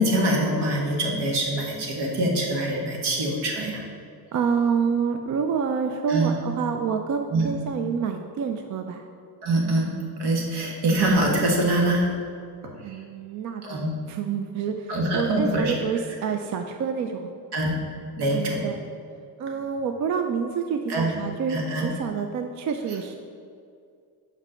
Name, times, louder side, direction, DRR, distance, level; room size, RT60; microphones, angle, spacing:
voice 1, 0.0-3.8 6.1-6.3 7.3-7.5 9.4-12.1 12.9-13.0 13.6-13.9 14.9-15.7 17.5-17.8 18.2-18.6 20.9-21.1 21.5-21.9, right 1 dB, 75° right, 0 dB, 1.6 m, -24 dB
voice 2, 4.3-9.0 12.8-17.3 18.3-18.8 19.4-23.2, right 6 dB, 45° right, 6 dB, 0.4 m, -28 dB
5.3 x 5.2 x 6.4 m, 2.3 s
cardioid pair, 150°, 40 cm